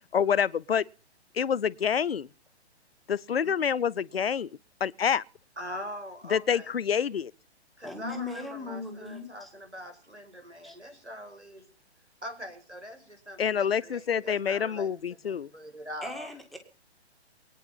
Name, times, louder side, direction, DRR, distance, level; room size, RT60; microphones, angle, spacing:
voice 1, 0.1-0.8 1.3-2.3 3.1-4.5 4.8-5.2 6.3-7.3 13.4-15.5, left 7 dB, 60° left, 0.7 m, -27 dB
voice 2, 5.6-6.7 7.8-11.7 12.2-14.9 15.2-16.3, equal, 85° right, 5.7 m, -42 dB
voice 3, 7.8-9.5 10.6-10.8 16.0-16.6, left 3 dB, ahead, 1.5 m, -38 dB
22.0 x 9.3 x 5.7 m
figure-of-eight pair, 130°, 34 cm